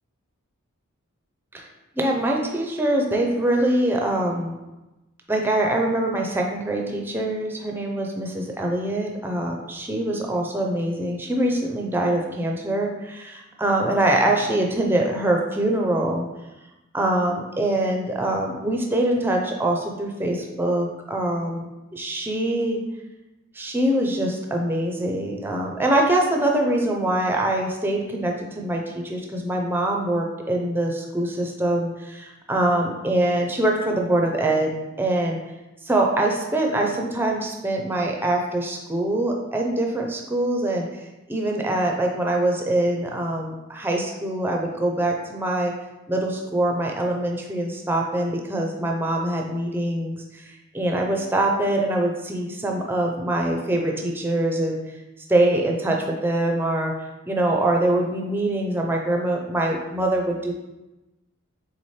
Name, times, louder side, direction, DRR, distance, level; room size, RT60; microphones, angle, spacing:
voice 1, 2.0-4.6 5.3-16.3 16.9-22.8 23.5-34.7 35.0-35.4 35.8-41.0 41.3-45.7 46.1-54.8 55.3-56.9 57.3-60.5, right 1 dB, 10° right, 1 dB, 0.4 m, -24 dB
4.2 x 3.7 x 3.2 m, 1.0 s
head